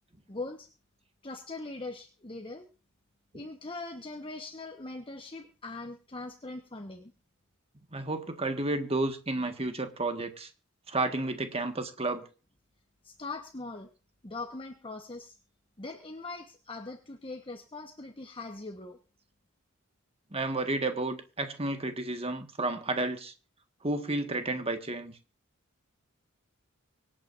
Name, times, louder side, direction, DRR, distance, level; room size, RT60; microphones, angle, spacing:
voice 1, 0.3-0.7 1.2-2.7 3.3-7.1 13.0-13.9 14.2-15.3 15.8-19.0, left 3 dB, 25° left, 5 dB, 1.2 m, -41 dB
voice 2, 7.9-10.5 10.9-12.2 20.3-23.3 23.8-25.1, right 2 dB, 30° right, 7 dB, 1.6 m, -31 dB
25.0 x 8.9 x 2.6 m, 0.35 s
head